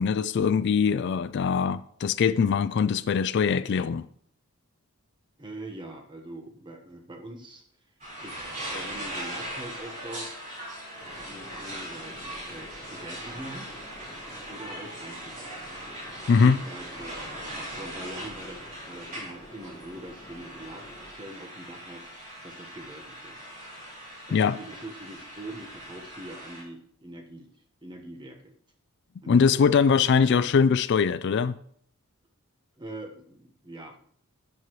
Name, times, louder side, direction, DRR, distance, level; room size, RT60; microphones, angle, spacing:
voice 1, 0.0-4.0 16.3-16.6 24.3-24.6 29.3-31.6, left 6 dB, 50° left, 0.3 m, -22 dB
voice 2, 5.4-7.6 8.2-10.4 11.2-13.7 14.5-15.6 16.4-17.2 17.8-23.5 24.3-27.5 27.8-28.5 29.2-29.7 30.1-30.5 32.8-34.0, right 1 dB, 20° right, 1.2 m, -43 dB
sound 1, 8.0-26.6, right 1 dB, 35° right, 4.4 m, -40 dB
sound 2, 11.0-21.1, left 1 dB, 20° left, 1.5 m, -49 dB
12.5 x 8.4 x 3.2 m
head